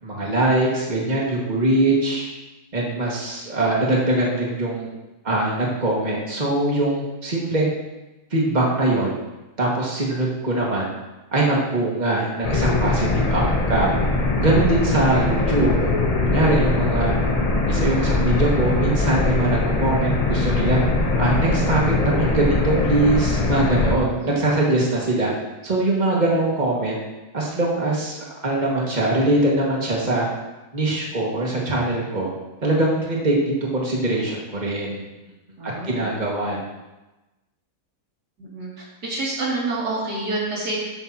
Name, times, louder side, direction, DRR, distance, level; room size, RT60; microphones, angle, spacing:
voice 1, 0.0-2.3 2.7-4.9 5.2-7.7 8.3-9.1 9.6-10.9 11.3-14.0 14.4-15.9 16.2-17.1 17.7-20.8 21.2-25.3 25.6-27.0 27.3-28.2 28.4-30.2 30.7-32.3 32.6-33.4 33.7-35.0 35.6-36.7, right 2 dB, 25° right, -4 dB, 2.1 m, -22 dB
sound 1, 12.4-24.0, left 3 dB, 30° left, 0.8 m, -21 dB
voice 2, 35.6-36.0 38.4-40.9, right 2 dB, 90° right, -5 dB, 3.4 m, -28 dB
13.5 x 8.9 x 3.0 m, 1.1 s
omnidirectional pair, 1.7 m